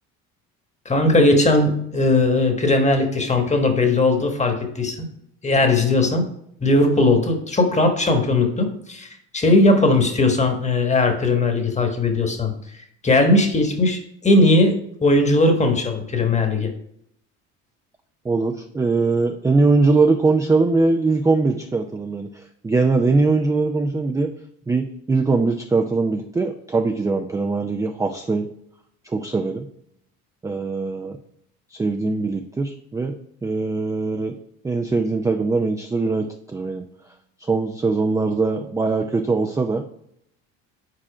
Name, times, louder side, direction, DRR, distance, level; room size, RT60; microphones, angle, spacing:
voice 1, 0.8-5.1 5.4-6.2 6.6-9.1 9.3-12.5 13.0-16.7, left 2 dB, 20° left, 5 dB, 1.2 m, -18 dB
voice 2, 18.2-24.3 24.7-28.5 29.0-29.7 30.4-31.2 31.7-33.2 33.4-34.4 34.6-36.8 37.4-39.8, right 3 dB, 10° right, 5 dB, 0.3 m, -21 dB
5.0 x 4.2 x 4.8 m, 0.71 s
supercardioid pair, 80°, 35 cm